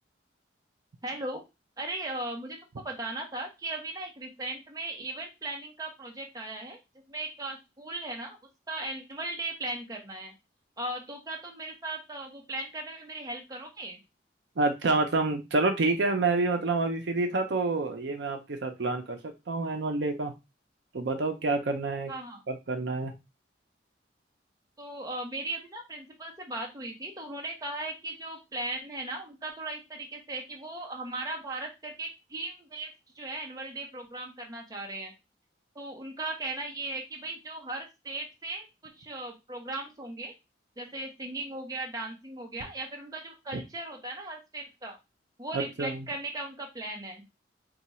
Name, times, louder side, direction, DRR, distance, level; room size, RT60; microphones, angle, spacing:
voice 1, 1.0-1.4 1.8-2.6 2.8-6.8 7.1-8.4 8.7-10.3 10.8-14.0 22.1-22.4 24.8-35.1 35.7-40.3 40.8-45.0 45.4-47.2, right 2 dB, 20° right, 1 dB, 0.7 m, -37 dB
voice 2, 14.6-20.3 20.9-22.1 22.5-23.1 45.5-46.1, right 3 dB, 70° right, 5 dB, 0.6 m, -28 dB
2.9 x 2.3 x 4.1 m, 0.24 s
head